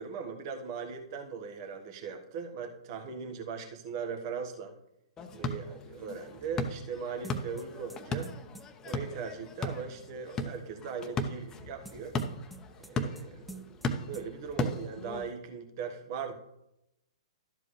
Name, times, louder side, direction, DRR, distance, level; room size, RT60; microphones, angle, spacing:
voice 1, 0.0-4.7 5.3-8.3 8.8-12.1 12.9-13.6 14.0-16.3, right 6 dB, 45° right, 5 dB, 1.4 m, -39 dB
sound 1, 5.2-15.3, left 1 dB, 20° left, 0.9 m, -37 dB
sound 2, 7.2-9.0 11.9-13.2 13.5-13.9 14.1-14.3, right 3 dB, ahead, 0.4 m, -48 dB
12.5 x 7.6 x 3.2 m, 0.86 s
figure-of-eight pair, 115°, 3 cm